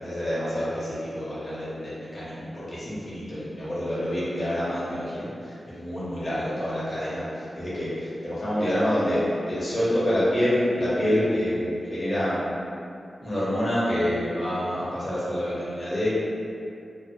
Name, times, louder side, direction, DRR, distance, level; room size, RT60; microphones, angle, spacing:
voice 1, 0.0-12.5 13.2-16.1, equal, 55° left, -10 dB, 0.8 m, -27 dB
2.1 x 2.1 x 2.9 m, 2.5 s
cardioid pair, 45°, 0 cm